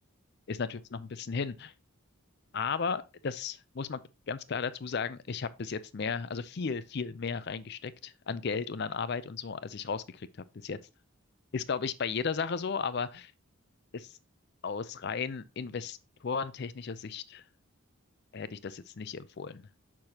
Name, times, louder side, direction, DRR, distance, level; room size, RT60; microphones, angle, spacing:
voice 1, 0.5-1.7 2.5-4.0 4.3-10.3 10.6-10.8 11.5-13.3 13.9-14.1 14.6-17.4 18.3-19.6, left 5 dB, 50° left, 0.5 m, -35 dB
6.7 x 6.1 x 2.8 m
head